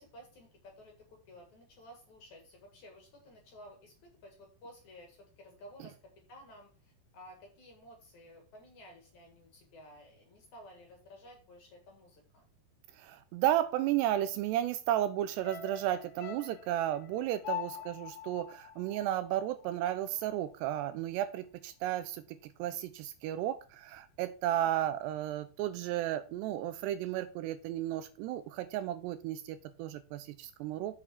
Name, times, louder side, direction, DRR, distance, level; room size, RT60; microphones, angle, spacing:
voice 1, 0.0-3.9 4.2-6.0 6.3-12.4 17.6-17.8 24.5-24.9, equal, 55° left, 2 dB, 2.6 m, -54 dB
voice 2, 13.0-31.0, right 12 dB, 80° right, 12 dB, 2.5 m, -33 dB
sound 1, 15.4-19.8 20.1-20.2, left 9 dB, 85° left, 1.6 m, -43 dB
7.0 x 6.8 x 4.4 m, 0.36 s
omnidirectional pair, 5.1 m